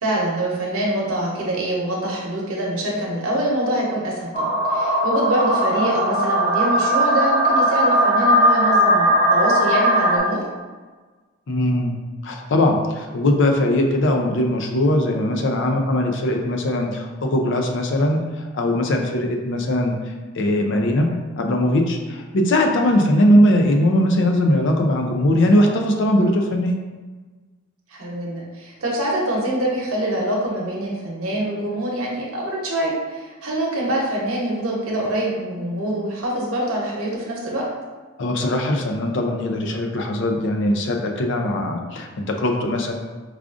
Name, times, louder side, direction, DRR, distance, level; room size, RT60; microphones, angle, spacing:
voice 1, 0.0-10.4 27.9-37.6, right 1 dB, 85° right, -3 dB, 0.9 m, -25 dB
sound 1, 4.3-10.2, equal, 10° right, 1.1 m, -18 dB
voice 2, 11.5-12.0 12.2-20.0 20.3-21.1 21.4-26.8 38.2-42.9, left 1 dB, 60° left, 3 dB, 0.4 m, -20 dB
4.8 x 2.4 x 2.4 m, 1.3 s
head